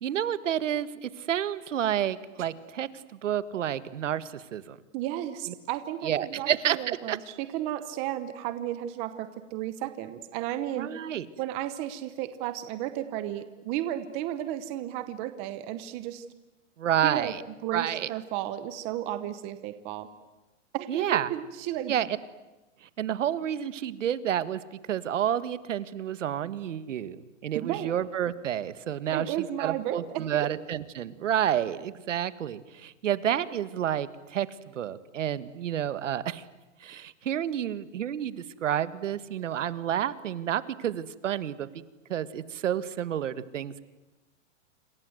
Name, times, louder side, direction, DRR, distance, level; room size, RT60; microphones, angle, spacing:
voice 1, 0.0-2.9 3.2-4.8 5.5-5.6 6.0-7.2 10.8-11.2 16.8-17.4 17.7-18.1 20.9-21.3 21.9-22.1 23.0-29.3 29.6-34.5 34.8-36.4 36.8-41.7 42.1-43.8, right 10 dB, 75° right, 14 dB, 1.7 m, -30 dB
voice 2, 4.9-10.9 11.4-16.2 17.0-17.3 17.6-20.1 20.7-21.9 27.5-27.9 29.1-30.5, right 12 dB, 15° right, 11 dB, 0.8 m, -33 dB
27.5 x 26.5 x 7.9 m, 1.1 s
hypercardioid pair, 175°, 38 cm